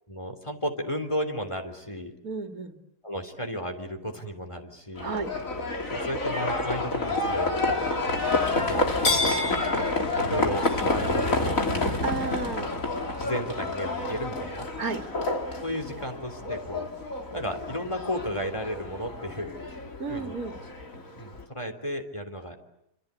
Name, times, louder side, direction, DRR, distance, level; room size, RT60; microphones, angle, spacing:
voice 1, 0.1-2.1 3.0-5.1 5.9-7.9 8.6-9.3 10.2-11.9 13.2-14.7 15.6-16.9 17.3-19.5 20.1-20.3 21.2-22.6, equal, 20° left, 5 dB, 3.4 m, -33 dB
voice 2, 2.2-2.7 5.0-5.3 12.0-12.8 14.8-15.0 20.0-20.5, right 4 dB, 65° right, 5 dB, 2.7 m, -32 dB
Livestock farm animals working animals, 5.0-21.4, left 2 dB, 55° left, 3.4 m, -29 dB
27.0 x 27.0 x 8.3 m, 0.78 s
omnidirectional pair, 1.7 m